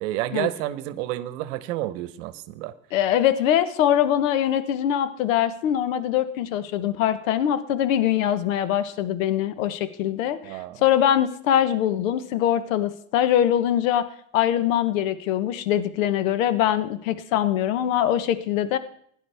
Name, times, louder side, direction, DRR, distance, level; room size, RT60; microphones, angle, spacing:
voice 1, 0.0-2.7 10.4-10.8, right 14 dB, 70° right, 14 dB, 1.0 m, -30 dB
voice 2, 2.9-14.1 14.3-18.8, left 10 dB, 75° left, 13 dB, 1.1 m, -23 dB
16.5 x 11.0 x 3.4 m, 0.63 s
hypercardioid pair, 100°, 40 cm